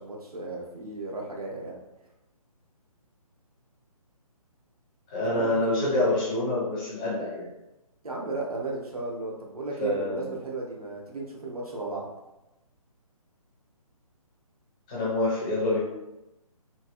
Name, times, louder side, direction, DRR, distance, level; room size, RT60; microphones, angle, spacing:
voice 1, 0.0-1.7 5.2-6.1 8.0-12.0, right 3 dB, 75° right, -2 dB, 0.9 m, -35 dB
voice 2, 5.1-7.5 9.8-10.3 14.9-15.8, left 2 dB, 10° left, -7 dB, 0.4 m, -26 dB
3.0 x 2.7 x 2.5 m, 0.95 s
figure-of-eight pair, 140°, 19 cm